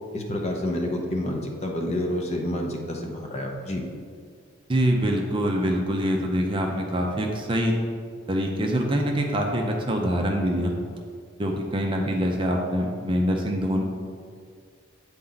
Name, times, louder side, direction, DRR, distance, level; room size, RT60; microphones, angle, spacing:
voice 1, 0.1-3.8, left 1 dB, 30° left, 1 dB, 0.7 m, -28 dB
voice 2, 4.7-7.7 8.3-10.8 11.4-13.8, equal, 25° right, 1 dB, 0.5 m, -24 dB
8.3 x 4.3 x 3.9 m, 2.1 s
head